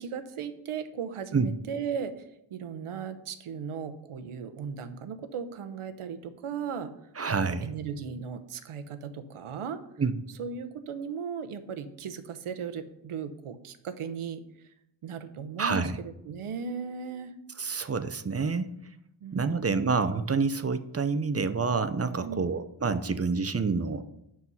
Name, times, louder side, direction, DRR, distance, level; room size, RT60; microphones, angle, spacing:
voice 1, 0.0-6.9 7.3-9.8 10.4-14.7 15.0-17.3 19.2-20.0 22.2-22.6, right 6 dB, 85° right, 10 dB, 1.0 m, -37 dB
voice 2, 7.2-7.7 10.0-10.1 15.6-15.9 17.6-18.7 19.3-24.1, right 4 dB, 30° right, 11 dB, 0.7 m, -28 dB
8.5 x 6.3 x 5.5 m, 0.80 s
cardioid pair, 75°, 49 cm